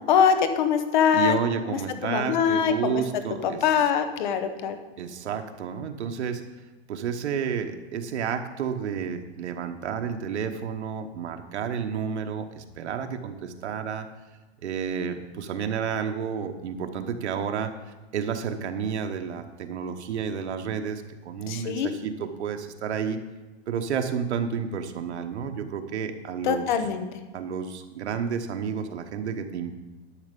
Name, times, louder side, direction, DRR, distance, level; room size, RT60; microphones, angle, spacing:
voice 1, 0.1-1.4 1.7-3.0 3.4-4.8 21.5-21.9 26.4-27.0, left 7 dB, 45° left, 9 dB, 1.0 m, -23 dB
voice 2, 1.1-3.6 5.0-6.4 6.9-14.1 14.6-17.7 18.1-23.2 23.7-26.7 27.3-29.7, right 7 dB, 90° right, 6 dB, 1.2 m, -31 dB
11.5 x 6.7 x 5.3 m, 1.2 s
supercardioid pair, 170°, 33 cm